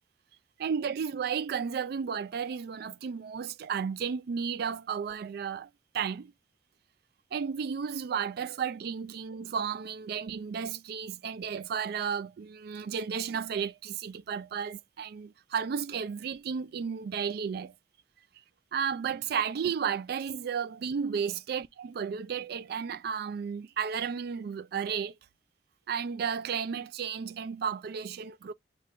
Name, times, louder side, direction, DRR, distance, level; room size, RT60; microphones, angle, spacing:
voice 1, 0.6-5.7 5.9-6.3 7.3-17.7 18.7-25.1 25.9-28.5, right 7 dB, 60° right, 0.3 m, -33 dB
5.7 x 2.3 x 3.7 m
head